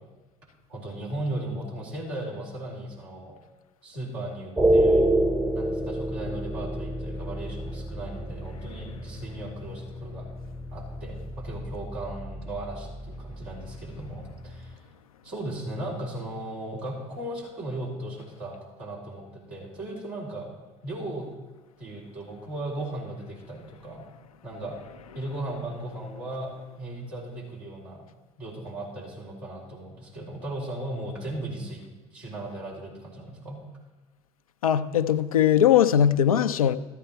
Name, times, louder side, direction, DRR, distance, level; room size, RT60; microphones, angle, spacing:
voice 1, 0.7-3.3 3.8-5.1 5.5-10.3 10.7-14.9 15.2-20.5 20.8-21.3 21.8-24.1 24.4-24.8 25.1-28.0 28.4-31.8 32.1-33.6, right 1 dB, 70° right, 4.3 m, -36 dB
sound 1, 4.6-14.8, right 1 dB, 10° right, 1.0 m, -29 dB
voice 2, 34.6-36.8, left 9 dB, 90° left, 0.4 m, -20 dB
13.5 x 9.2 x 4.5 m
hypercardioid pair, 60°, 18 cm